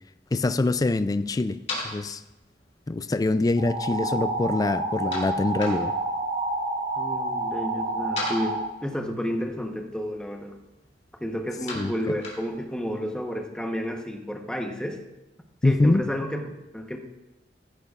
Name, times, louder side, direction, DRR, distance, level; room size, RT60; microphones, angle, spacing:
voice 1, 0.3-1.6 1.8-2.2 2.9-5.9 11.7-11.9 15.6-16.0, left 2 dB, 20° left, 12 dB, 0.3 m, -24 dB
sound 1, 1.0-13.0, left 2 dB, 40° left, 3.1 m, -42 dB
sound 2, 3.6-8.6, right 2 dB, 85° right, 2.5 m, -29 dB
voice 2, 7.0-10.6 11.2-15.0 15.6-16.4 16.7-17.0, equal, 5° left, 2 dB, 1.0 m, -31 dB
14.5 x 11.0 x 2.4 m, 0.99 s
head